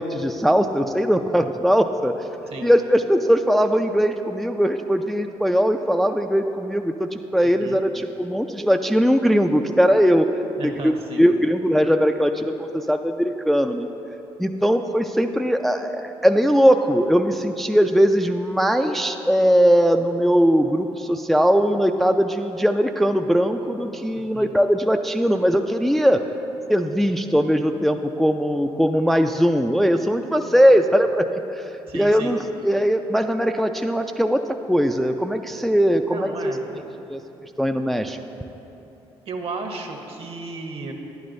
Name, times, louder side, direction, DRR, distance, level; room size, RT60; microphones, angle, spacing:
voice 1, 0.0-2.3 2.6-10.4 10.8-13.9 14.4-26.2 26.7-34.4 34.7-36.6 37.1-37.2 37.6-38.2, equal, ahead, 5 dB, 0.4 m, -20 dB
voice 2, 7.4-7.8 10.6-11.3 24.3-24.5 31.9-32.4 36.1-36.6 39.3-40.9, right 3 dB, 50° right, 3 dB, 1.1 m, -34 dB
11.0 x 9.4 x 2.6 m, 3.0 s
supercardioid pair, 60°, 12 cm